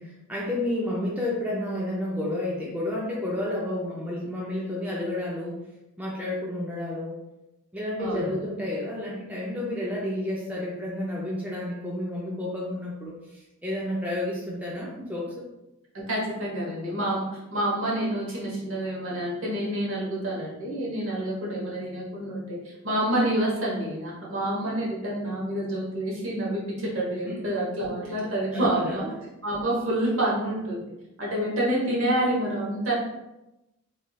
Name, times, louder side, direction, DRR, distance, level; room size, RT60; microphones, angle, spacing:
voice 1, 0.0-5.6 6.0-7.2 7.7-15.4 27.2-27.4 28.5-29.1, left 1 dB, 5° right, -5 dB, 0.3 m, -31 dB
voice 2, 8.0-8.3 16.1-29.0 29.4-30.8 31.2-33.0, right 1 dB, 65° right, -5 dB, 1.0 m, -28 dB
3.1 x 2.5 x 2.2 m, 0.95 s
head